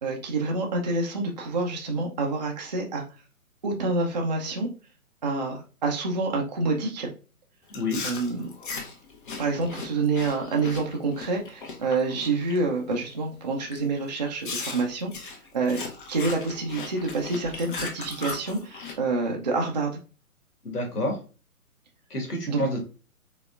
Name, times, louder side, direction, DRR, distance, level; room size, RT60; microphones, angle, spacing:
voice 1, 0.0-3.0 3.6-4.7 5.2-7.1 8.0-8.5 9.4-15.8 16.1-19.9 22.5-22.7, right 3 dB, 30° right, 1 dB, 0.4 m, -27 dB
Chewing mastication, 7.7-12.6 12.9-13.2 13.7-13.8 14.4-19.0, left 4 dB, 35° left, 0.7 m, -37 dB
voice 2, 20.6-21.2 22.1-22.8, left 1 dB, 85° left, 2 dB, 1.5 m, -28 dB
3.7 x 3.5 x 2.3 m, 0.34 s
figure-of-eight pair, 135°, 45 cm